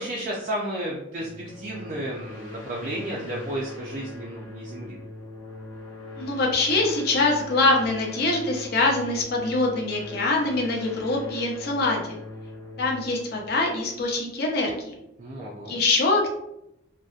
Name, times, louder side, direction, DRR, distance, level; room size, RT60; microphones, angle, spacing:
voice 1, 0.0-5.0 15.2-15.9, right 1 dB, 40° right, -4 dB, 0.3 m, -33 dB
sound 1, 1.2-14.5, left 2 dB, 80° left, 0.9 m, -41 dB
voice 2, 6.2-12.2 12.8-14.9 15.7-16.3, left 2 dB, 50° left, 0 dB, 0.5 m, -24 dB
2.6 x 2.1 x 2.3 m, 0.82 s
head